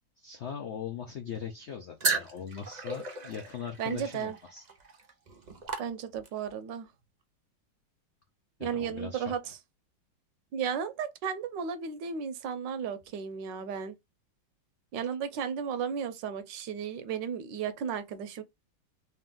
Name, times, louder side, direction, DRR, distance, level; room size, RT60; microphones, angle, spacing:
voice 1, 0.2-4.6 8.6-9.3, left 7 dB, 80° left, 0.6 m, -40 dB
sound 1, 2.0-6.5, right 4 dB, 50° right, 0.5 m, -35 dB
voice 2, 3.8-4.4 5.8-6.9 8.6-9.6 10.5-13.9 14.9-18.4, right 7 dB, 80° right, 1.3 m, -34 dB
3.4 x 2.9 x 3.6 m
omnidirectional pair, 2.0 m